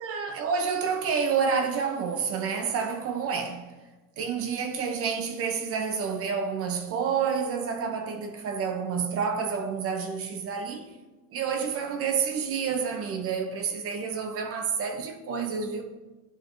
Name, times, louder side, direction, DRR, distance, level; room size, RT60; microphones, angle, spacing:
voice 1, 0.0-3.7 4.2-10.9 11.3-15.8, right 6 dB, 45° right, 0.7 m, -29 dB
10.5 x 4.4 x 2.6 m
cardioid pair, 140°, 31 cm